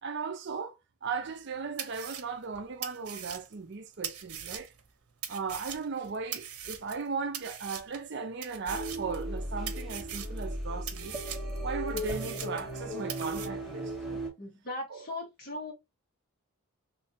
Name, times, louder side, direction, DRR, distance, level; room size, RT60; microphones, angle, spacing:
voice 1, 0.0-4.7 5.3-11.2 11.6-14.3 14.9-15.1, right 5 dB, 50° right, 0.5 m, -37 dB
sound 1, 1.3-1.4 1.8-4.9 5.2-7.1 7.3-8.1 8.4-9.4 9.7-10.5 10.9-12.8 13.1-13.5, right 9 dB, 85° right, 0.7 m, -41 dB
sound 2, 8.7-14.3, right 1 dB, ahead, 1.8 m, -36 dB
voice 2, 14.4-15.7, left 2 dB, 40° left, 2.1 m, -38 dB
3.2 x 3.2 x 2.7 m
head